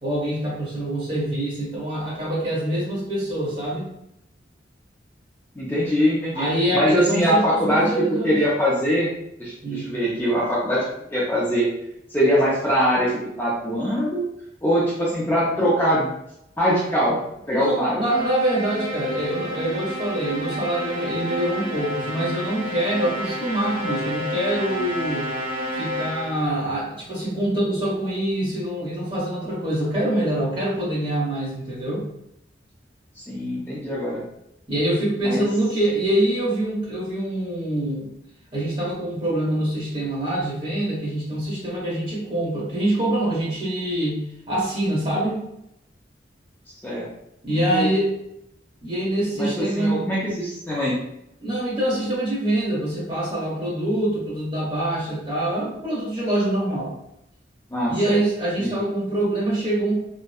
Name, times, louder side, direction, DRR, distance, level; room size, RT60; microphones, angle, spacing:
voice 1, 0.0-3.9 6.3-8.4 9.6-9.9 17.5-25.3 25.7-32.1 34.7-38.1 38.5-45.4 47.4-48.1 48.8-50.0 51.4-56.9 57.9-59.9, right 1 dB, 30° right, -6 dB, 0.9 m, -25 dB
voice 2, 5.6-6.5 6.7-9.1 9.4-10.8 11.1-11.7 12.1-13.1 13.4-14.2 14.6-16.1 16.6-17.2 17.5-18.0 33.2-34.2 35.2-35.5 46.8-47.1 47.7-47.9 49.4-51.0 57.7-58.2 58.6-58.8, equal, 10° left, -7 dB, 0.4 m, -22 dB
sound 1, 18.0-26.6, equal, 75° right, 1.4 m, -30 dB
2.7 x 2.1 x 2.2 m, 0.80 s
head